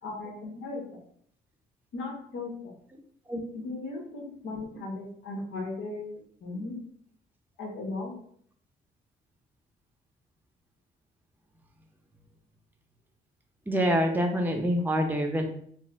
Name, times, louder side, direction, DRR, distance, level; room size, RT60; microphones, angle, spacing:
voice 1, 0.0-1.0 1.9-2.5 3.5-6.0 6.4-6.8 7.6-8.1, left 2 dB, 80° left, -1 dB, 1.2 m, -36 dB
voice 2, 13.7-15.5, equal, 10° right, 3 dB, 0.7 m, -26 dB
4.1 x 2.1 x 3.6 m, 0.62 s
cardioid pair, 90°, 20 cm